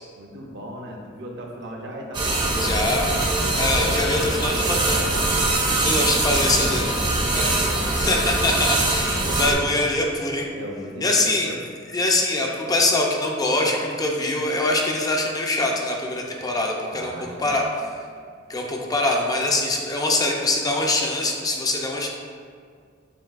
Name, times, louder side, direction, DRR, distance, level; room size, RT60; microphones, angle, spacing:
voice 1, 0.2-3.0 5.5-6.9 7.4-8.0 10.6-11.6 16.9-17.7 18.2-18.3, equal, 60° right, 0 dB, 0.6 m, -38 dB
sound 1, 2.1-9.5, right 2 dB, 25° right, 0.6 m, -22 dB
voice 2, 2.6-3.1 3.5-5.0 5.8-6.9 7.3-7.5 7.9-10.5 11.0-11.5 11.9-17.1 17.4-17.6 18.5-22.1, left 2 dB, 20° left, 0 dB, 0.4 m, -23 dB
7.6 x 2.6 x 2.4 m, 2.1 s
head